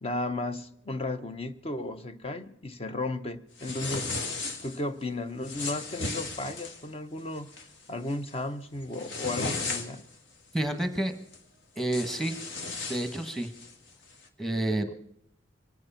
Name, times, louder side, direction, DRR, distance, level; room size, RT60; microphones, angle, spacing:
voice 1, 0.0-4.1 4.6-7.5 7.9-10.0, left 2 dB, 30° left, 0.8 m, -34 dB
sound 1, 3.6-4.8 5.4-6.8 7.3-7.7 8.1-8.3 8.8-10.1 11.3-11.4 11.8-13.7, left 3 dB, 65° left, 1.7 m, -35 dB
voice 2, 10.5-11.1 11.8-12.4 12.9-13.5 14.4-14.9, right 1 dB, ahead, 1.4 m, -29 dB
24.0 x 9.6 x 5.7 m
head